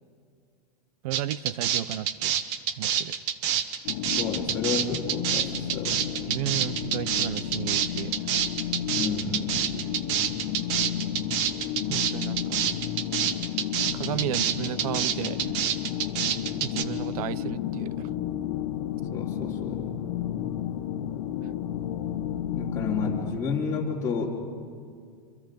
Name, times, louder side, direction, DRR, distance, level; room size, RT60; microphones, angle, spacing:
voice 1, 1.0-2.3 2.8-3.1 6.3-8.2 11.9-12.6 13.9-15.6 16.6-18.1, right 13 dB, 65° right, 20 dB, 0.7 m, -33 dB
sound 1, 1.1-16.8, right 9 dB, 50° right, 1.2 m, -27 dB
sound 2, 3.8-23.3, left 10 dB, 60° left, 1.3 m, -32 dB
voice 2, 4.2-6.1 8.9-9.8 19.1-19.9 22.5-24.3, left 5 dB, 15° left, -4 dB, 2.8 m, -31 dB
28.0 x 25.5 x 5.3 m, 2.2 s
supercardioid pair, 150°, 20 cm